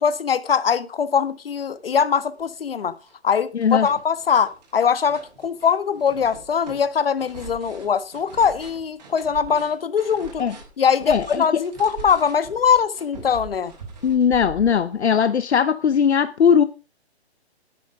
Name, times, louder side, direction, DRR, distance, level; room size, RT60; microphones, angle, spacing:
voice 1, 0.0-2.9 3.2-10.4 10.8-13.7, left 7 dB, 60° left, 1.6 m, -22 dB
sound 1, 1.9-2.0 2.4-3.1 3.4-15.1, right 4 dB, 40° right, 6.3 m, -42 dB
voice 2, 3.5-3.9 10.4-10.5 11.1-11.4 14.0-16.6, left 7 dB, 80° left, 1.0 m, -19 dB
11.5 x 11.0 x 4.8 m
hypercardioid pair, 170°, 33 cm